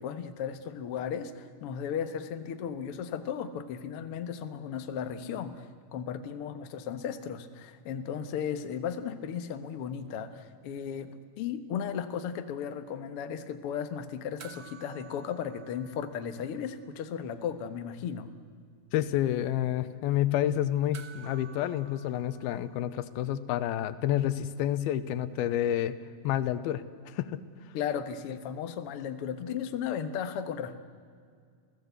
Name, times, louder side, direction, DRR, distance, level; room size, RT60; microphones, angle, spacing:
voice 1, 0.0-5.7 5.9-18.3 27.7-30.8, left 8 dB, 75° left, 9 dB, 1.3 m, -35 dB
sound 1, 14.4-17.1 17.3-17.4 20.9-23.5 25.7-25.8, right 6 dB, 60° right, 1.2 m, -53 dB
voice 2, 18.9-25.9 26.2-27.4, left 12 dB, 90° left, 13 dB, 2.7 m, -29 dB
28.5 x 17.0 x 8.1 m, 2.1 s
omnidirectional pair, 4.4 m